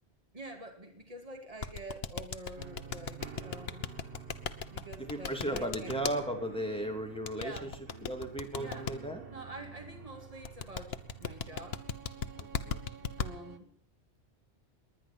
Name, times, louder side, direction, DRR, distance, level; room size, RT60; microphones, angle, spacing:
voice 1, 0.3-3.9 4.7-5.9 7.3-7.7 8.6-8.9 9.3-11.8 13.2-13.7, right 1 dB, 35° right, 3 dB, 2.7 m, -47 dB
sound 1, 1.6-6.2 7.3-8.9 10.4-13.3, left 7 dB, 70° left, 1.2 m, -36 dB
sound 2, 2.6-13.6, right 7 dB, 60° right, 1.3 m, -49 dB
voice 2, 5.0-7.7 8.1-9.2 12.4-12.8, right 1 dB, 5° left, 2 dB, 3.0 m, -36 dB
20.5 x 10.0 x 5.9 m, 0.67 s
omnidirectional pair, 1.1 m